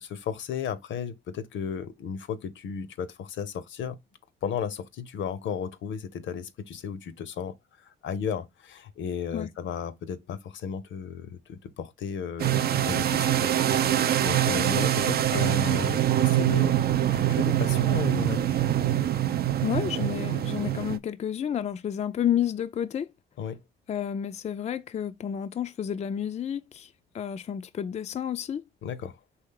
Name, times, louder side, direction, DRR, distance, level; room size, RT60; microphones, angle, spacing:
voice 1, 0.0-4.0 4.4-16.8 17.1-18.5 23.4-23.6 28.8-29.2, left 7 dB, 65° left, 0.7 m, -34 dB
sound 1, 12.4-21.0, right 11 dB, 50° right, 0.4 m, -24 dB
voice 2, 19.6-23.1 23.9-28.6, left 9 dB, 35° left, 0.3 m, -30 dB
4.3 x 3.1 x 3.7 m
supercardioid pair, 65°, 21 cm